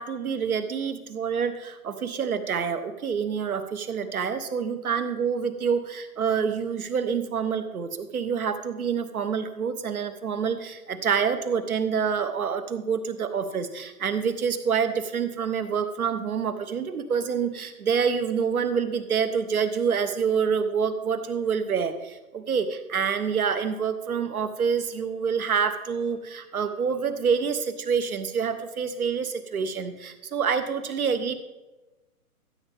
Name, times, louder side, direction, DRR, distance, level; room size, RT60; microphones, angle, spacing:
voice 1, 0.0-31.3, right 6 dB, 70° right, 10 dB, 1.2 m, -27 dB
14.5 x 7.4 x 3.6 m, 1.1 s
hypercardioid pair, 140°, 45 cm